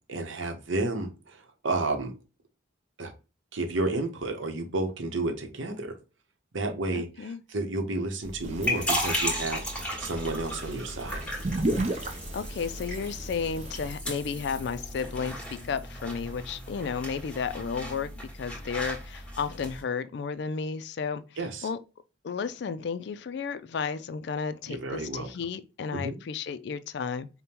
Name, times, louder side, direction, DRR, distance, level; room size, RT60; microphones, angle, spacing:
voice 1, 0.1-2.1 3.0-3.1 3.5-6.0 6.5-11.3 21.4-21.7 24.7-25.3 25.9-26.2, right 2 dB, 75° right, 0.8 m, -31 dB
voice 2, 6.9-7.4 11.9-21.2 21.6-21.8 22.2-27.3, left 6 dB, 55° left, 0.3 m, -33 dB
sound 1, 8.2-19.8, left 1 dB, 5° left, 1.3 m, -35 dB
sound 2, 8.4-13.9, right 1 dB, 35° right, 0.5 m, -35 dB
5.2 x 2.1 x 2.8 m
head